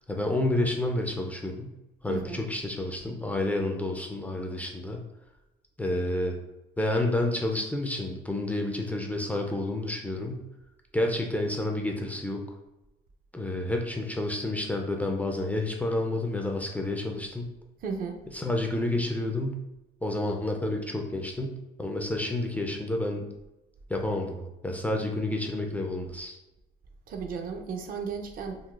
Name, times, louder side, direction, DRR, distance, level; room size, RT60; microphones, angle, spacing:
voice 1, 0.1-1.7 2.0-5.0 5.8-6.4 6.8-10.4 10.9-12.4 13.3-17.5 18.3-19.6 20.0-23.3 23.9-26.4, left 1 dB, 10° left, 2 dB, 0.4 m, -29 dB
voice 2, 2.1-2.4 17.8-18.2 27.1-28.6, right 5 dB, 55° right, 5 dB, 0.5 m, -34 dB
3.8 x 2.3 x 2.3 m, 0.96 s
cardioid pair, 110°, 17 cm